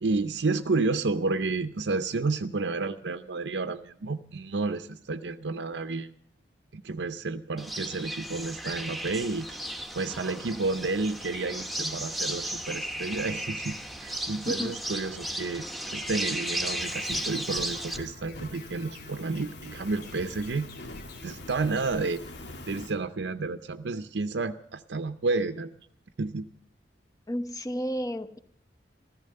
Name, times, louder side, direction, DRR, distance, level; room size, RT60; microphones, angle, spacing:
voice 1, 0.0-6.1 6.7-15.7 15.9-20.7 21.2-22.2 22.7-25.7 26.2-26.5, right 3 dB, 80° right, 9 dB, 0.6 m, -31 dB
sound 1, 7.6-18.0, right 1 dB, ahead, 1.2 m, -35 dB
voice 2, 14.5-14.8 27.3-28.4, equal, 20° left, 8 dB, 1.0 m, -32 dB
sound 2, 16.0-22.2, left 2 dB, 60° left, 4.1 m, -50 dB
Fire, 16.8-22.9, left 2 dB, 90° left, 2.6 m, -44 dB
14.0 x 14.0 x 6.6 m, 0.67 s
head